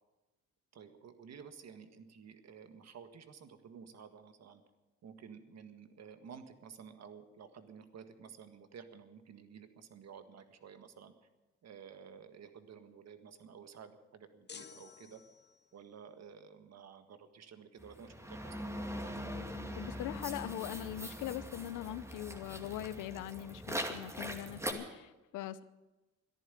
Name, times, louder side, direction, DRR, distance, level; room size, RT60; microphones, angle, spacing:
voice 1, 0.7-4.6 5.0-11.1 11.6-15.2 15.7-18.7, right 7 dB, 60° right, 9 dB, 1.7 m, -53 dB
sound 1, 14.5-15.8, left 6 dB, 35° left, 0.8 m, -53 dB
sound 2, 17.8-24.7, equal, 10° right, 2.2 m, -42 dB
voice 2, 19.7-25.6, left 13 dB, 90° left, 16 dB, 0.8 m, -41 dB
14.0 x 11.0 x 9.2 m, 1.1 s
cardioid pair, 90°, 30 cm